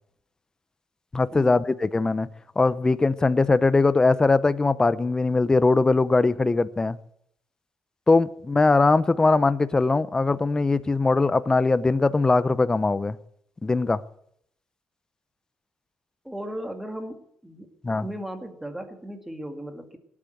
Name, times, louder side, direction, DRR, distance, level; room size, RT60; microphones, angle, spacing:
voice 1, 1.1-2.3 2.6-7.0 8.1-13.2 13.6-14.0 17.8-18.0, left 3 dB, 20° left, 0.7 m, -21 dB
voice 2, 16.2-20.0, right 1 dB, 5° right, 2.1 m, -36 dB
17.5 x 8.6 x 7.9 m
cardioid pair, 120°, 4 cm